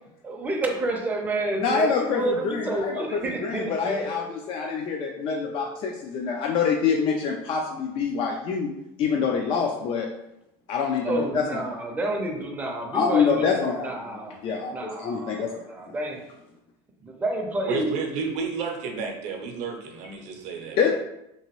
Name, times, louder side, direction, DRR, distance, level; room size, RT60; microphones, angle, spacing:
voice 1, 0.2-4.1 11.0-14.4 14.7-16.2 17.0-17.9, right 2 dB, 10° right, 0 dB, 0.5 m, -29 dB
voice 2, 1.6-3.0 3.4-8.7 9.0-10.1 10.7-11.8 12.9-15.7 20.8-20.9, left 6 dB, 40° left, 1 dB, 0.3 m, -26 dB
sound 1, 1.8-3.0 3.3-4.5 4.8-6.0 6.4-7.5, left 1 dB, 90° left, 0.8 m, -42 dB
voice 3, 17.7-20.9, right 5 dB, 60° right, 3 dB, 0.6 m, -31 dB
2.9 x 2.5 x 2.9 m, 0.84 s
cardioid pair, 135°, 14 cm